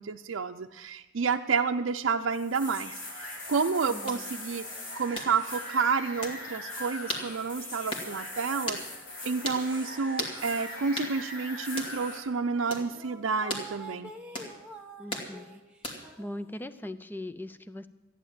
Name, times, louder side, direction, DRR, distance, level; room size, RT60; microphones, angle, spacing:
voice 1, 0.0-4.7 4.9-8.8 9.2-14.1, right 5 dB, 85° right, 4 dB, 0.5 m, -30 dB
sound 1, 2.3-12.2, left 2 dB, 85° left, 3.6 m, -41 dB
voice 2, 3.9-4.3 15.0-15.6 15.9-17.9, left 1 dB, 10° left, 12 dB, 0.5 m, -40 dB
sound 2, 4.1-4.2 5.1-5.3 6.2-6.4 7.1-7.3 7.9-8.1 8.7-8.9 9.4-9.6 10.2-10.4 11.0-11.1 11.8-11.9 12.7-12.9 13.5-13.7 14.3-14.5 15.1-15.3 15.8-16.1, equal, 25° left, 2.4 m, -35 dB
sound 3, 9.2-10.6 11.0-11.2 11.8-11.9 12.1-16.9, right 2 dB, 5° right, 1.1 m, -48 dB
14.5 x 10.5 x 7.3 m, 1.1 s
head